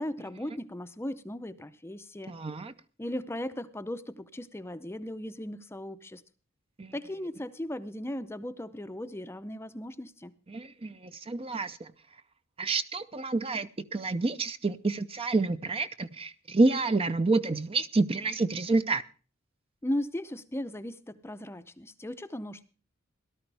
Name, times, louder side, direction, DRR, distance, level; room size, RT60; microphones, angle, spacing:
voice 1, 0.0-2.4 3.0-6.2 6.9-10.3 19.8-22.7, left 1 dB, 10° left, 0.6 m, -37 dB
voice 2, 2.3-2.7 6.8-6.9 10.5-11.9 12.6-19.0, right 3 dB, 30° right, 0.6 m, -28 dB
17.5 x 12.5 x 3.4 m
head